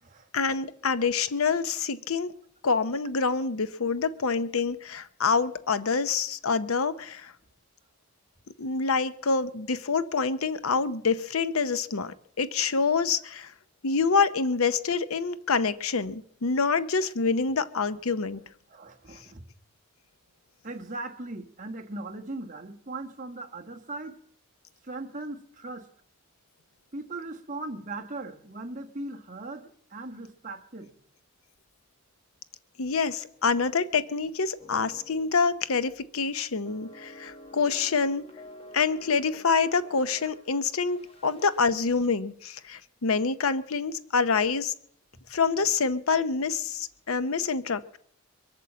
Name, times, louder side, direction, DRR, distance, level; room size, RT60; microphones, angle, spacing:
voice 1, 0.3-2.3 2.6-7.3 8.6-13.5 13.8-18.4 32.8-38.2 38.7-44.7 45.3-48.0, left 5 dB, 80° left, 14 dB, 0.7 m, -26 dB
voice 2, 18.7-19.4 20.6-24.2 24.8-25.9 26.9-30.9 41.2-41.3, right 2 dB, 35° right, 3 dB, 1.4 m, -39 dB
sound 1, 34.6-35.4 35.7-35.9 36.7-42.1, left 1 dB, 25° left, 1.4 m, -50 dB
23.0 x 8.2 x 7.4 m, 0.68 s
head